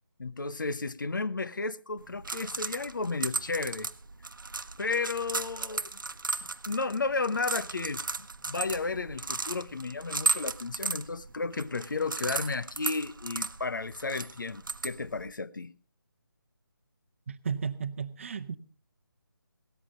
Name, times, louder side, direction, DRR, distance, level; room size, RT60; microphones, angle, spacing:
voice 1, 0.2-3.9 4.8-5.9 6.7-15.7, left 4 dB, 60° left, 0.9 m, -33 dB
sound 1, 2.0-15.3, right 3 dB, 65° right, 1.0 m, -36 dB
voice 2, 17.3-18.6, right 6 dB, 35° right, 0.9 m, -34 dB
17.5 x 14.0 x 3.8 m
figure-of-eight pair, 155°, 12 cm